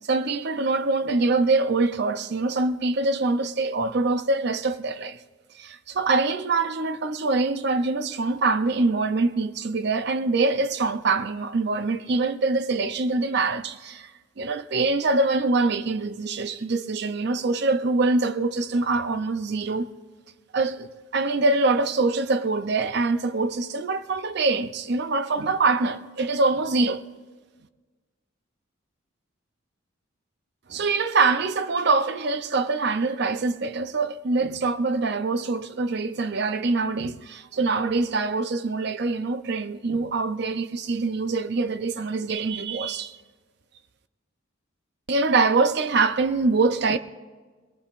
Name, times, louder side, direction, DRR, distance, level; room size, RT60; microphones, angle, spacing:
voice 1, 0.1-5.2 5.6-14.1 14.4-19.9 20.5-27.0 30.7-43.2 45.1-47.0, right 3 dB, 55° right, 0.5 m, -24 dB
22.0 x 19.0 x 2.5 m
head